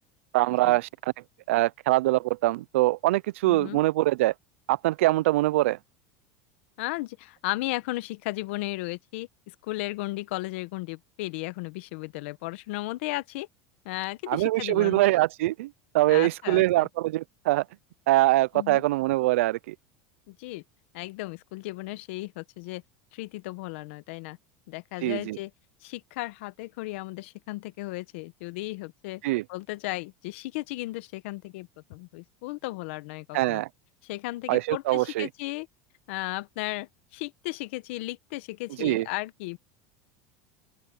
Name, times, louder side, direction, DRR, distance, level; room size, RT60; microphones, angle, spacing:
voice 1, 0.3-0.9 1.5-4.3 4.7-5.8 14.3-17.6 18.1-19.7 25.0-25.4 29.2-29.4 33.3-33.7 34.5-35.3 38.8-39.1, right 18 dB, 90° right, 0.5 m, -23 dB
voice 2, 3.4-3.8 6.8-13.5 13.8-15.0 16.1-16.9 18.5-18.8 20.3-20.6 20.9-22.8 23.1-24.4 24.7-25.5 25.8-29.2 29.5-33.6 34.0-35.7 36.1-39.6, left 20 dB, 70° left, 1.1 m, -35 dB
open air
supercardioid pair, 150°, 7 cm